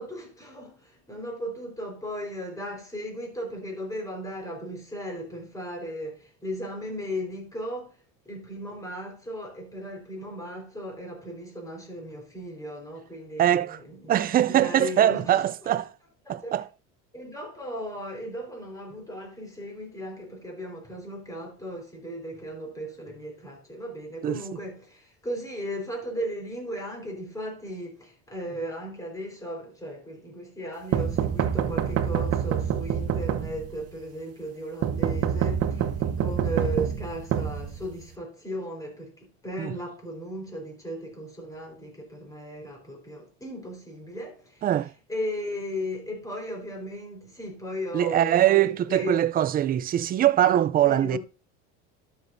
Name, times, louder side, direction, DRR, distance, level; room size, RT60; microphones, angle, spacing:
voice 1, 0.0-8.0 8.2-15.4 16.3-16.5 17.1-44.7 45.1-49.2 50.8-51.2, equal, 10° left, 4.3 m, -36 dB
voice 2, 13.4-13.8 14.1-15.9 16.3-16.7 24.2-24.4 39.6-39.7 44.6-44.9 47.9-51.2, right 12 dB, 30° right, 0.4 m, -22 dB
sound 1, 30.9-33.9 34.8-38.1, right 9 dB, 45° right, 1.0 m, -27 dB
12.0 x 7.1 x 2.6 m
supercardioid pair, 115°, 32 cm